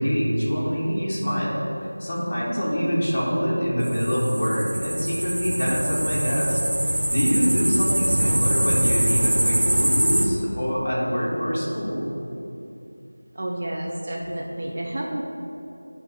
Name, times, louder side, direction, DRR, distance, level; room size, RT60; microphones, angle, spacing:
voice 1, 0.0-1.6 2.0-6.6 7.1-12.1, equal, 25° left, -8 dB, 1.4 m, -24 dB
sound 1, 3.8-10.3, right 1 dB, 60° right, 0.8 m, -24 dB
voice 2, 13.3-15.2, right 1 dB, 35° right, -2 dB, 0.5 m, -30 dB
9.1 x 3.2 x 4.8 m, 2.8 s
figure-of-eight pair, 175°, 0 cm